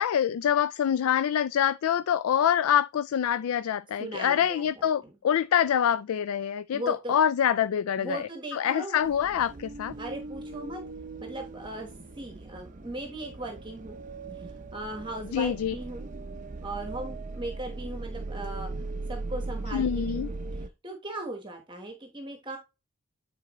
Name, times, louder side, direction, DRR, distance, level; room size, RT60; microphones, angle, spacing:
voice 1, 0.0-9.9 15.3-15.7 19.7-20.3, left 9 dB, 80° left, 0.3 m, -25 dB
voice 2, 4.0-5.1 6.7-7.2 8.0-9.0 10.0-10.8 11.2-14.0 14.3-16.1 16.6-18.8 19.1-22.6, right 1 dB, 20° right, 1.1 m, -38 dB
sound 1, 9.0-20.7, right 3 dB, 35° right, 0.5 m, -39 dB
9.1 x 4.1 x 3.0 m
head